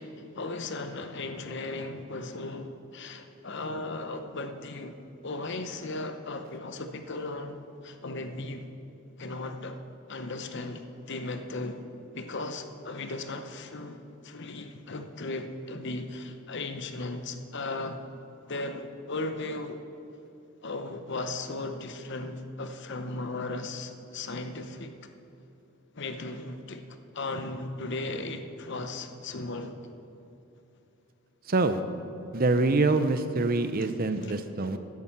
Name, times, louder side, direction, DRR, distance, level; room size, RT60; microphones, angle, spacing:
voice 1, 0.0-5.0 5.2-8.7 9.2-11.8 12.1-18.0 18.5-19.8 20.6-24.9 25.9-26.9 27.1-29.8 33.8-33.9 34.2-34.4, left 2 dB, 55° left, 8 dB, 0.8 m, -36 dB
voice 2, 31.5-31.8 32.3-34.8, right 3 dB, 45° right, 10 dB, 0.6 m, -25 dB
10.0 x 9.7 x 7.3 m, 2.9 s
head